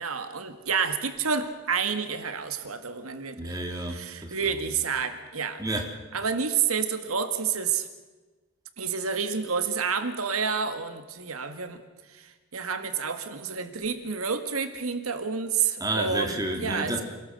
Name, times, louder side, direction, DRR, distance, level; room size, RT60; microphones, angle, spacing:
voice 1, 0.0-3.6 3.9-5.6 6.1-7.9 8.8-11.8 12.1-12.3 12.5-16.9, right 6 dB, 85° right, 9 dB, 1.8 m, -29 dB
voice 2, 3.4-4.3 5.6-5.9 15.8-17.0, right 1 dB, 15° right, 3 dB, 2.9 m, -30 dB
27.0 x 18.5 x 7.8 m, 1.3 s
head